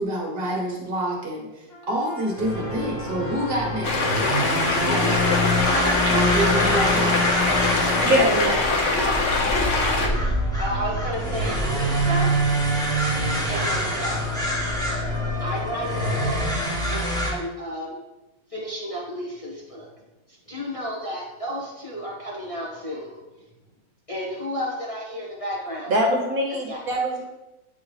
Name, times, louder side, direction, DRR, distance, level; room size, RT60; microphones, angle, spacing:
voice 1, 0.0-4.1 4.8-5.2 6.1-7.1, right 1 dB, 35° right, -2 dB, 1.4 m, -27 dB
Trumpet, 1.7-8.3, left 2 dB, 75° left, 1.6 m, -39 dB
sound 1, 2.4-17.3, equal, 5° left, 1.0 m, -25 dB
sound 2, 3.8-10.1, left 3 dB, 50° left, 1.0 m, -23 dB
voice 2, 5.5-6.1 7.0-8.1 8.9-9.2 10.0-10.1 10.6-12.3 13.5-14.3 15.4-16.4 16.9-18.0 18.5-19.9 20.3-23.2 24.1-25.9 26.7-27.0, equal, 30° left, -5 dB, 0.7 m, -32 dB
voice 3, 8.0-8.7 9.6-10.0 25.9-27.2, right 1 dB, 55° right, 0 dB, 1.2 m, -23 dB
8.6 x 3.7 x 3.2 m, 1.0 s
omnidirectional pair, 2.0 m